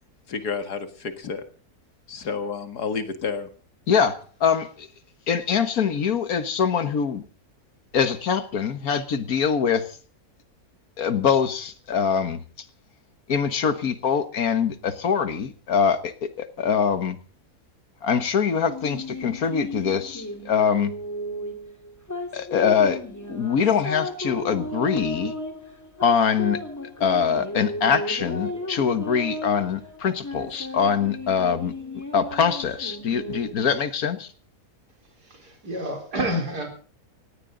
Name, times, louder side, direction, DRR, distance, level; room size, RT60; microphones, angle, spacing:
voice 1, 0.3-1.4 2.1-3.5, left 5 dB, 80° left, 2.4 m, -30 dB
voice 2, 3.9-4.9 5.3-7.2 7.9-10.0 11.0-12.4 13.3-17.2 18.0-20.9 22.3-23.0 23.3-25.4 26.0-26.6 27.0-34.3, left 6 dB, 65° left, 1.8 m, -23 dB
sound 1, 18.7-33.5, left 1 dB, 10° left, 2.3 m, -35 dB
voice 3, 35.2-36.7, equal, 85° right, 4.7 m, -29 dB
18.0 x 17.5 x 3.9 m
omnidirectional pair, 1.7 m